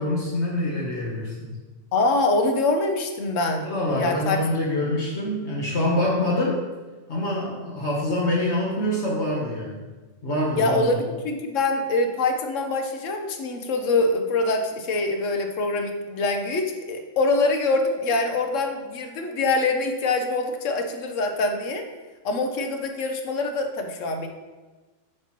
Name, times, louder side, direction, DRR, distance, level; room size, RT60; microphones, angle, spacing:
voice 1, 0.0-1.6 3.6-6.6 7.1-9.8 10.2-10.9, left 1 dB, 65° left, -4 dB, 1.3 m, -25 dB
voice 2, 1.9-3.7 4.0-4.4 10.6-21.9 22.2-24.3, left 2 dB, 80° left, 4 dB, 1.2 m, -24 dB
7.8 x 3.0 x 5.8 m, 1.2 s
omnidirectional pair, 1.3 m